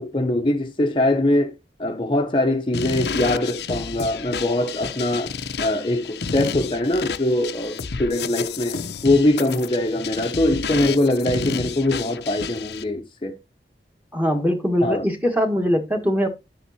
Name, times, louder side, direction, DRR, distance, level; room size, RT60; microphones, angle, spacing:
voice 1, 0.0-13.4 14.8-15.0, left 1 dB, 30° left, 0.8 m, -22 dB
sound 1, 2.7-12.8, left 5 dB, 70° left, 0.6 m, -31 dB
voice 2, 14.1-16.3, equal, 10° right, 1.5 m, -21 dB
9.2 x 7.3 x 2.8 m
head